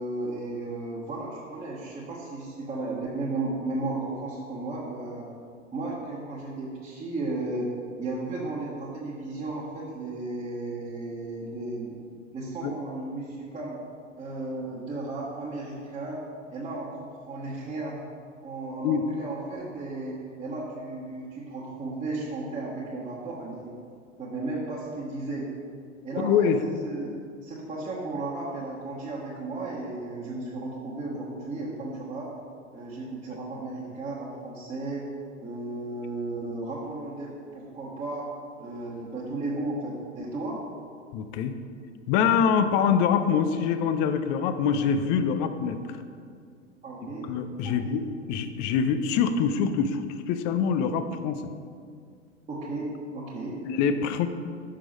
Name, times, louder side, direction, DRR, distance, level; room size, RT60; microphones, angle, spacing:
voice 1, 0.0-5.2 5.7-7.7 8.0-12.0 12.3-13.8 14.2-16.2 16.5-18.0 18.4-23.7 24.2-25.5 26.0-27.1 27.4-32.3 32.7-35.1 35.4-38.3 38.6-40.6 46.8-47.3 47.6-48.0 52.5-53.6, right 2 dB, 15° right, -8 dB, 1.3 m, -34 dB
voice 2, 26.2-26.6 41.1-41.5 42.1-45.8 47.0-48.0 48.3-50.0 50.3-51.4 53.6-54.3, left 7 dB, 25° left, 9 dB, 0.4 m, -24 dB
6.4 x 6.0 x 5.2 m, 2.2 s
figure-of-eight pair, 90°, 37 cm